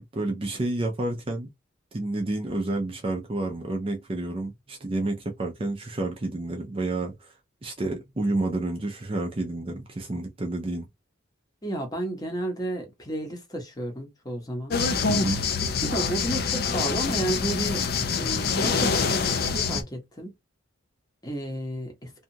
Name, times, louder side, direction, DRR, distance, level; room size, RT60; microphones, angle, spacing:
voice 1, 0.1-1.5 1.9-7.3 7.6-10.9 15.1-15.4, right 2 dB, 25° right, 0.4 m, -29 dB
voice 2, 11.6-14.8 15.9-17.8 18.2-20.3 21.2-22.1, right 1 dB, 20° left, 0.8 m, -32 dB
sound 1, 14.7-19.8, left 5 dB, 50° left, 0.4 m, -25 dB
2.6 x 2.3 x 2.7 m
head